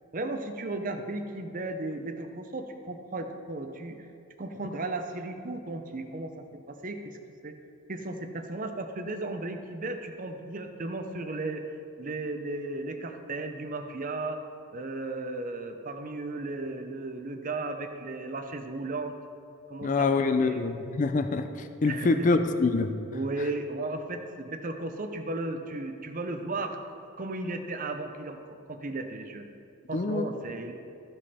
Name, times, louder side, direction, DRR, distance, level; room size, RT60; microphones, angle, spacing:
voice 1, 0.1-4.0 4.4-7.2 7.4-7.6 7.9-11.6 12.0-14.4 14.7-19.1 19.7-20.6 21.9-22.3 23.1-28.4 28.7-29.5 29.9-30.7, right 2 dB, 35° right, 6 dB, 0.6 m, -35 dB
voice 2, 19.8-22.9 29.9-30.3, left 3 dB, 35° left, 9 dB, 0.4 m, -25 dB
14.0 x 5.2 x 4.2 m, 2.7 s
head